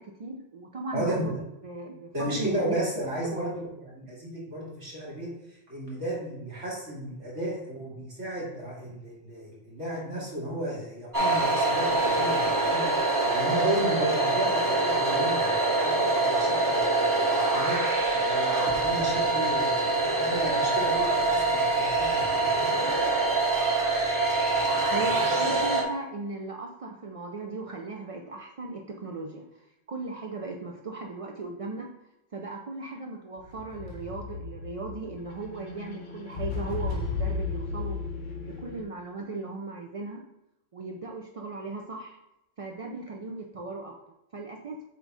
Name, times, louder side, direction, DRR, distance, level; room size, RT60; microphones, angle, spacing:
voice 1, 0.0-1.3 1.6-3.5 24.9-29.6 29.9-31.9 32.3-38.0 38.4-40.2 40.7-42.2 42.6-43.9 44.3-44.8, right 3 dB, 55° right, 1 dB, 0.3 m, -37 dB
voice 2, 0.9-1.4 2.1-5.3 5.7-17.8 18.2-22.5, right 1 dB, 75° right, -6 dB, 2.6 m, -34 dB
vintage scifi drone, 11.1-25.8, right 2 dB, 20° right, 0.8 m, -25 dB
sound 1, 33.4-38.8, left 4 dB, 80° left, 1.4 m, -34 dB
7.6 x 2.7 x 4.7 m, 0.88 s
omnidirectional pair, 1.3 m